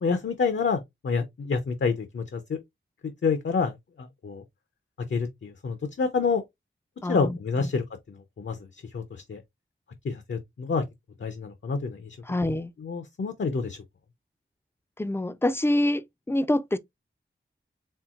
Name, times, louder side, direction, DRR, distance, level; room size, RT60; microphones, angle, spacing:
voice 1, 0.0-2.6 3.0-4.4 5.1-6.4 7.1-9.4 10.0-10.8 11.2-12.2 12.8-13.8, left 5 dB, 65° left, 0.7 m, -28 dB
voice 2, 7.0-7.7 12.3-12.7 15.0-16.8, left 1 dB, 10° left, 0.4 m, -26 dB
4.5 x 3.5 x 2.4 m
wide cardioid pair, 75°, 20 cm